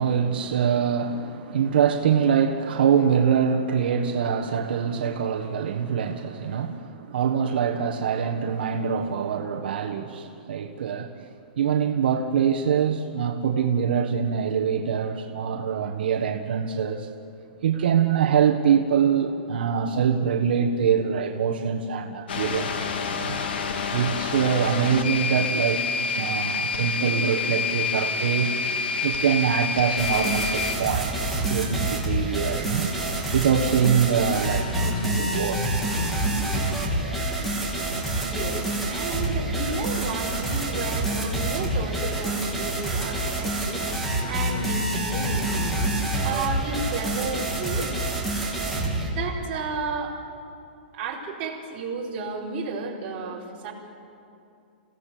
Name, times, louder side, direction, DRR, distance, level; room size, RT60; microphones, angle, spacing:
voice 1, 0.0-17.1 17.6-22.9 23.1-23.4 23.9-25.8 26.1-28.6 29.0-32.9 33.3-35.7 36.5-36.7, right 7 dB, 70° right, 3 dB, 1.4 m, -24 dB
sound 1, 22.3-30.7, left 5 dB, 85° left, 2.2 m, -28 dB
sound 2, 30.0-49.1, right 1 dB, ahead, 3.2 m, -27 dB
voice 2, 38.0-45.9 46.2-47.9 49.0-50.2 50.9-53.7, right 4 dB, 30° right, -4 dB, 4.5 m, -33 dB
29.5 x 17.0 x 7.7 m, 2.5 s
hypercardioid pair, 170°, 5 cm